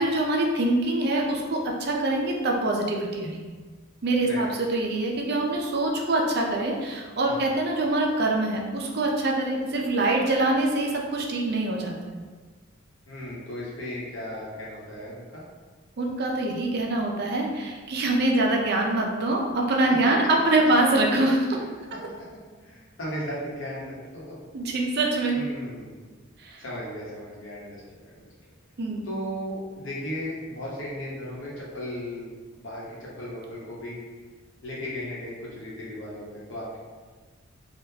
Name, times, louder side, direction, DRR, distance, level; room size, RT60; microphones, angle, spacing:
voice 1, 0.0-3.5 4.0-12.2 16.0-21.6 21.9-22.0 24.5-25.4 26.4-26.6 28.8-29.0, right 2 dB, 50° right, 0 dB, 0.5 m, -24 dB
voice 2, 13.1-15.4 22.6-24.4 25.3-26.0 26.6-28.2 29.0-32.3 32.6-34.0 34.6-36.8, equal, 65° left, -5 dB, 0.9 m, -36 dB
3.6 x 2.3 x 2.7 m, 1.4 s
head